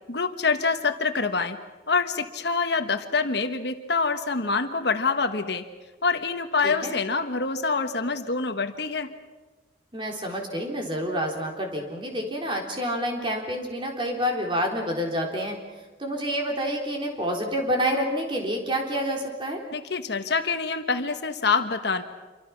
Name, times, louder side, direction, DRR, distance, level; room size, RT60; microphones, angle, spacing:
voice 1, 0.1-1.6 1.9-5.6 6.0-9.1 19.7-22.0, left 4 dB, 60° left, 8 dB, 1.3 m, -26 dB
voice 2, 6.6-6.9 9.9-15.6 16.0-19.6, equal, 25° right, 1 dB, 3.8 m, -28 dB
27.0 x 24.5 x 6.0 m, 1.3 s
head